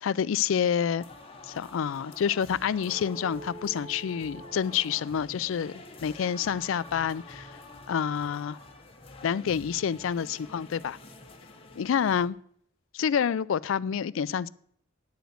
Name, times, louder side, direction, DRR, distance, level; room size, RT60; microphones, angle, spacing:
voice 1, 0.0-1.1 1.4-7.6 7.9-8.6 9.2-11.0 11.8-12.4 12.9-14.5, left 8 dB, 70° left, 0.3 m, -28 dB
sound 1, 1.0-12.3, left 2 dB, 30° left, 1.1 m, -48 dB
sound 2, 2.8-7.6, right 2 dB, 30° right, 1.8 m, -48 dB
10.0 x 5.0 x 7.7 m
head